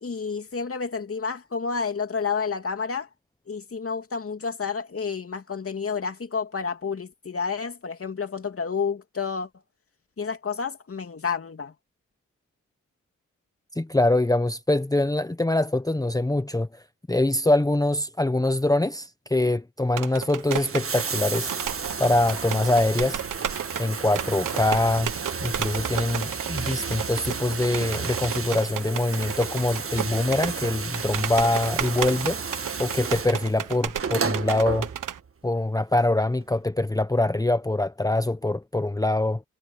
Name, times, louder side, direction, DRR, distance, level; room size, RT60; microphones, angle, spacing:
voice 1, 0.0-3.1 3.5-9.5 10.2-11.7, left 5 dB, 45° left, 2.9 m, -30 dB
voice 2, 13.8-16.8 17.1-21.5 22.0-23.2 23.8-25.1 25.4-32.4 32.8-34.9 35.4-39.4, left 2 dB, 10° left, 1.1 m, -24 dB
sound 1, 19.9-35.2, right 10 dB, 70° right, 1.5 m, -33 dB
Bathtub (filling or washing), 20.3-35.3 36.4-36.5, right 5 dB, 40° right, 1.7 m, -33 dB
supercardioid pair, 50°, 33 cm